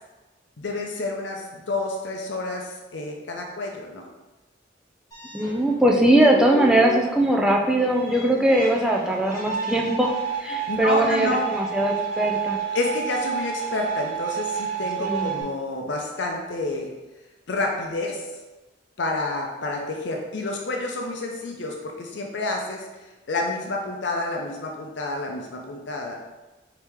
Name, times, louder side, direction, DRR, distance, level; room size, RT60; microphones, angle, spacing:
voice 1, 0.6-4.1 10.7-11.5 12.7-16.9 17.5-18.3 19.0-26.2, left 2 dB, 75° left, 1 dB, 0.6 m, -29 dB
sound 1, 5.1-15.4, right 7 dB, 20° left, 1.2 m, -31 dB
voice 2, 5.3-10.1 10.4-12.6 15.0-15.4, right 1 dB, 5° right, -1 dB, 0.4 m, -20 dB
4.7 x 2.9 x 3.5 m, 1.1 s
head